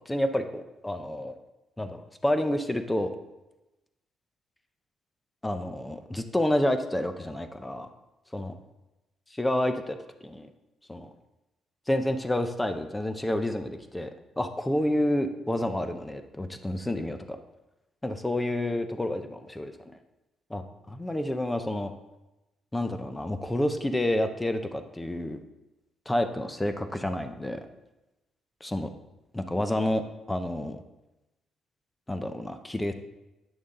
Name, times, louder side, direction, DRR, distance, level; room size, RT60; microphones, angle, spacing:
voice 1, 0.0-1.3 1.8-3.1 5.4-7.9 8.3-8.5 9.3-10.5 10.9-11.1 11.9-17.4 18.0-20.0 20.5-21.9 22.7-25.4 26.1-27.6 28.6-28.9 29.3-30.8 32.1-32.9, left 1 dB, 10° left, 8 dB, 0.7 m, -29 dB
8.9 x 6.3 x 3.8 m, 1.0 s
cardioid pair, 90°, 0 cm